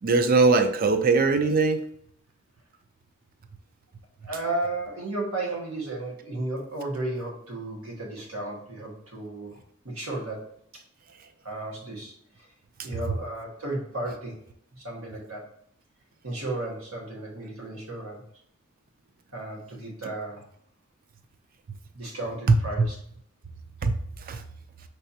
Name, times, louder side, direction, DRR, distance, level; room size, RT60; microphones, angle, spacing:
voice 1, 0.0-1.8 22.5-22.9 23.8-23.9 24.3-24.4, right 3 dB, 45° right, 8 dB, 0.4 m, -21 dB
voice 2, 4.2-9.6 9.8-10.4 11.4-12.5 12.8-14.4 14.7-15.4 16.2-18.2 19.3-20.4 21.9-23.0, right 2 dB, 85° right, -1 dB, 1.6 m, -34 dB
5.7 x 3.3 x 2.8 m, 0.69 s
head